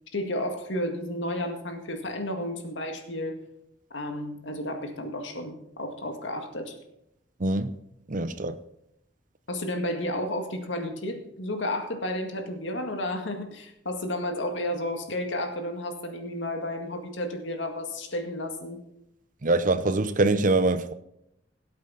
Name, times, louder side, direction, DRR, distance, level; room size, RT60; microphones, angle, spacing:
voice 1, 0.1-3.4 3.9-6.8 9.5-18.8, left 1 dB, 85° left, 2.0 m, -32 dB
voice 2, 8.1-8.5 19.4-20.9, right 2 dB, 45° right, 0.7 m, -24 dB
18.0 x 8.1 x 4.1 m
head